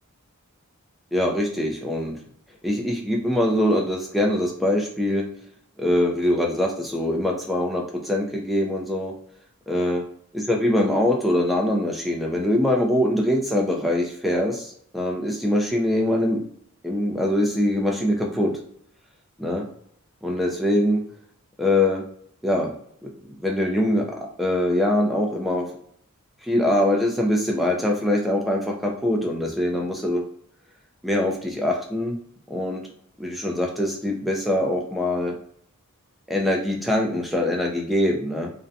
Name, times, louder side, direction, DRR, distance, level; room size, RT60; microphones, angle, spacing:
voice 1, 1.1-2.2 2.6-5.3 5.8-9.1 9.7-10.0 10.3-16.4 16.8-18.5 19.4-19.6 20.2-21.0 21.6-22.0 22.4-22.7 23.0-24.0 24.4-25.7 26.4-30.2 31.0-32.2 32.5-32.8 33.2-35.4 36.3-38.5, left 1 dB, ahead, -1 dB, 0.3 m, -23 dB
2.5 x 2.1 x 2.5 m, 0.65 s
head